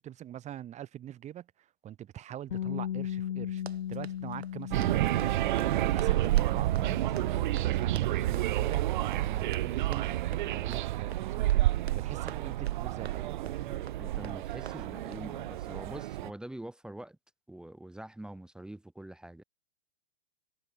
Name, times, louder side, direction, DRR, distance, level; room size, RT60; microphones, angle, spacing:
voice 1, 0.0-3.6 3.9-13.8, right 11 dB, 20° right, 5.6 m, -44 dB
sound 1, 2.5-14.3, left 10 dB, 65° left, 4.7 m, -40 dB
Run, 3.5-15.3, right 7 dB, 85° right, 2.6 m, -50 dB
sound 2, 4.7-16.3, right 15 dB, 50° right, 0.8 m, -29 dB
voice 2, 13.7-17.2 17.5-19.4, right 1 dB, ahead, 0.8 m, -45 dB
hypercardioid pair, 135°, 31 cm